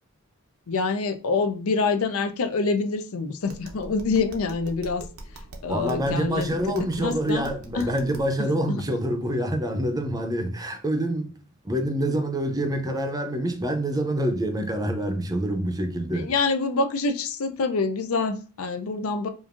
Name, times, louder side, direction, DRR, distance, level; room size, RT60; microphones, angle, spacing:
voice 1, 0.7-5.1 5.6-6.5 6.8-7.5 7.7-7.9 8.4-8.8 16.1-19.3, left 4 dB, 75° left, 0.5 m, -26 dB
Tap, 3.4-8.3, right 1 dB, 75° right, 0.8 m, -43 dB
voice 2, 5.7-11.4 11.6-16.3, right 1 dB, 15° right, 0.6 m, -26 dB
5.1 x 2.5 x 2.5 m
head